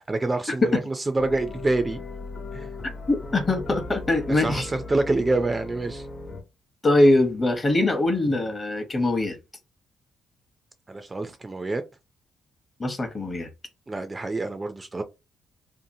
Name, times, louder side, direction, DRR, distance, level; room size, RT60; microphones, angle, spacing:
voice 1, 0.1-2.0 2.5-2.7 4.3-6.1 10.9-11.8 13.9-15.0, right 2 dB, 20° right, 0.3 m, -26 dB
sound 1, 1.2-6.4, left 2 dB, 50° left, 0.9 m, -37 dB
voice 2, 3.1-4.7 6.8-9.4 12.8-13.5, left 2 dB, 30° left, 0.8 m, -22 dB
2.7 x 2.5 x 2.7 m
cardioid pair, 90°, 0 cm